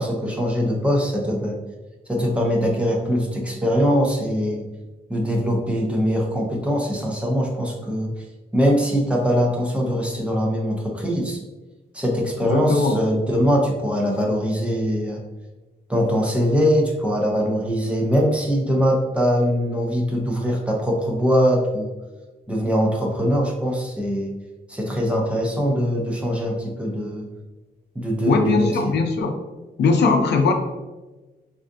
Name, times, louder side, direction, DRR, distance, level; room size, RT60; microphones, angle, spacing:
voice 1, 0.0-1.6 2.1-4.7 5.1-8.1 8.5-11.4 11.9-15.2 15.9-21.9 22.5-24.3 24.7-27.3 28.0-28.9, equal, 5° right, -2 dB, 0.4 m, -22 dB
voice 2, 12.4-13.0 28.3-29.3 29.8-30.5, left 4 dB, 80° left, 4 dB, 0.5 m, -19 dB
3.3 x 2.5 x 2.5 m, 1.2 s
wide cardioid pair, 175°, 17 cm